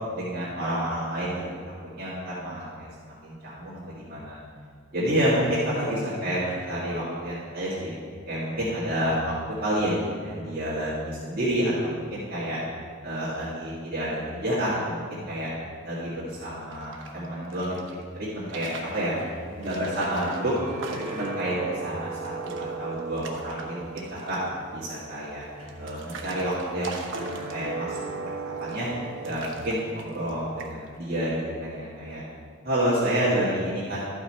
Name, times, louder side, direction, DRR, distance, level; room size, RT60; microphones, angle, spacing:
voice 1, 0.1-1.6 1.8-4.4 4.9-7.9 8.3-9.3 9.6-12.6 13.0-15.5 15.8-17.8 18.1-19.2 19.6-20.5 20.9-24.4 24.7-25.4 25.8-26.9 27.3-28.3 28.6-28.9 29.2-32.2 32.6-34.0, equal, 45° right, -10 dB, 2.0 m, -29 dB
sound 1, 16.6-17.9 18.4-19.0 19.6-21.4 21.8-21.9 22.1-22.7 23.0-23.7 24.0-24.5 25.2-27.9 28.6-29.0 29.2-30.3 30.6-31.0, right 4 dB, 60° right, 0.9 m, -42 dB
sound 2, 18.8-30.4, right 4 dB, 80° right, 1.1 m, -38 dB
12.5 x 5.8 x 4.4 m, 2.1 s
head